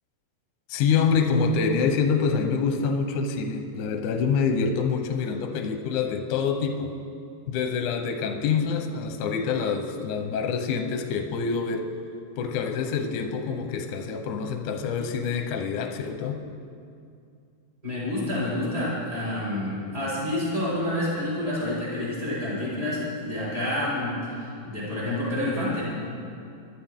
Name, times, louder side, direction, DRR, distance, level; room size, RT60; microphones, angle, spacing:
voice 1, 0.7-6.9 7.5-11.9 12.4-16.4, left 5 dB, 70° left, 5 dB, 2.1 m, -26 dB
voice 2, 17.8-25.9, left 1 dB, 25° right, -9 dB, 4.8 m, -28 dB
23.5 x 12.0 x 3.7 m, 2.4 s
omnidirectional pair, 4.4 m